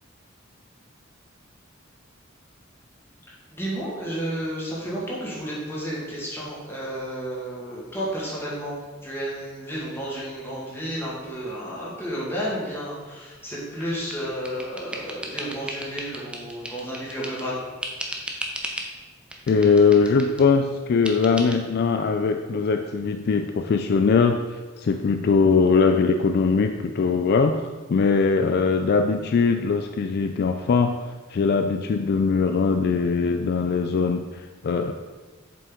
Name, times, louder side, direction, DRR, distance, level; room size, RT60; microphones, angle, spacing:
voice 1, 3.5-8.8 9.0-17.6 24.8-24.9, equal, 10° left, -6 dB, 2.1 m, -32 dB
sound 1, 13.8-17.5 17.8-18.9 19.3-20.5 21.1-21.6, right 1 dB, 5° right, 0.7 m, -35 dB
voice 2, 19.5-31.0 31.3-34.9, left 5 dB, 55° left, 7 dB, 0.3 m, -21 dB
7.5 x 5.4 x 3.8 m, 1.3 s
head